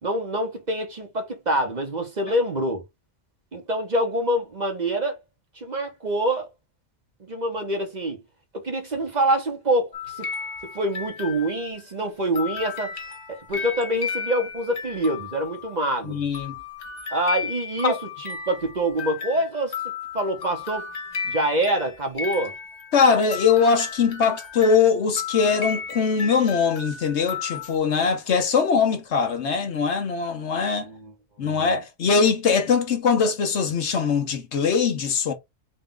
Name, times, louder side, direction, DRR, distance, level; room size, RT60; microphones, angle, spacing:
voice 1, 0.0-2.8 3.5-5.2 5.5-6.5 7.2-8.2 8.6-10.3 10.7-13.0 13.3-16.2 17.1-19.7 20.1-20.9 21.2-22.5 30.8-31.1 31.4-31.8, right 1 dB, 40° right, 0.9 m, -26 dB
sound 1, 9.9-11.8 12.3-27.9, left 5 dB, 40° left, 0.9 m, -34 dB
voice 2, 16.0-16.5 17.8-17.9 22.9-30.9 31.4-35.3, left 5 dB, 70° left, 1.1 m, -21 dB
3.9 x 2.4 x 3.7 m
omnidirectional pair, 1.2 m